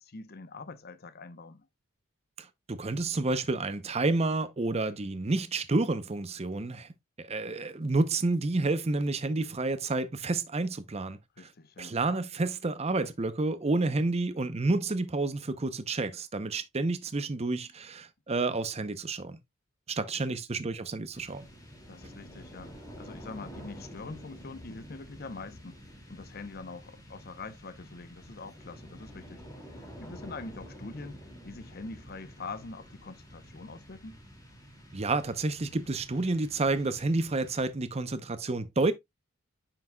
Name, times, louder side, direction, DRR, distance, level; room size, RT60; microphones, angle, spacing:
voice 1, 0.0-1.7 11.4-12.0 20.0-20.4 21.9-25.8 26.1-29.4 29.7-34.2, left 3 dB, 45° left, 0.7 m, -44 dB
voice 2, 2.4-6.9 7.2-11.2 11.8-19.4 19.9-21.5 34.9-38.9, right 3 dB, 30° right, 0.6 m, -30 dB
sound 1, 21.1-38.1, equal, 15° left, 2.2 m, -49 dB
9.1 x 6.0 x 2.2 m
head